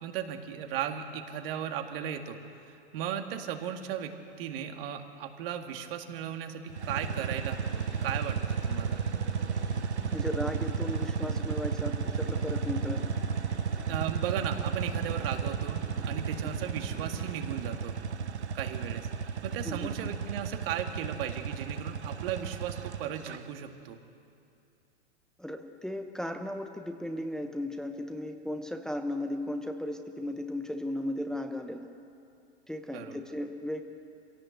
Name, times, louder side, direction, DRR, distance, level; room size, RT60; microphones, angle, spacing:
voice 1, 0.0-2.4 2.7-9.0 13.9-18.0 18.5-19.1 19.4-24.0 32.9-33.2, right 9 dB, 55° right, 5 dB, 2.2 m, -36 dB
sound 1, 6.7-23.4, right 6 dB, 90° right, 1.0 m, -33 dB
sound 2, 6.9-17.4, left 7 dB, 35° left, 1.8 m, -49 dB
voice 2, 10.1-13.2 16.4-16.5 19.6-19.9 25.4-31.9 32.7-33.8, left 1 dB, ahead, 5 dB, 1.0 m, -36 dB
25.0 x 17.0 x 8.0 m, 2.6 s
hypercardioid pair, 105°, 33 cm